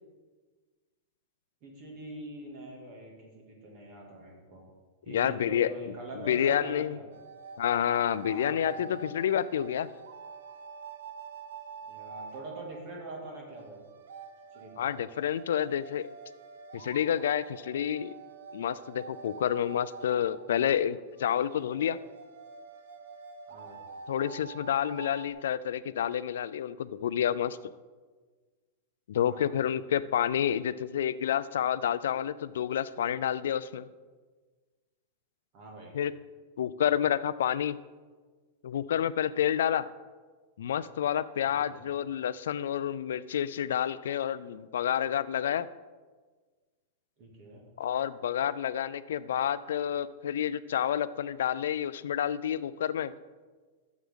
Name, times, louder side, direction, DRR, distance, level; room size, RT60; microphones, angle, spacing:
voice 1, 1.6-4.6 5.0-7.0 8.2-8.8 11.9-13.8 14.5-14.8 23.5-23.8 29.2-29.6 35.5-35.9 41.5-41.8 47.2-47.6, right 2 dB, 35° right, 0 dB, 2.2 m, -44 dB
voice 2, 5.1-5.7 6.1-7.0 7.6-9.9 14.8-16.1 16.7-18.1 18.5-22.0 24.1-27.6 29.1-33.9 35.9-36.1 36.6-37.8 38.6-39.9 40.6-45.7 47.8-53.1, left 9 dB, 90° left, 16 dB, 0.4 m, -29 dB
sound 1, 7.1-25.3, right 5 dB, 80° right, 0.8 m, -47 dB
12.5 x 7.3 x 3.7 m, 1.4 s
supercardioid pair, 180°, 0 cm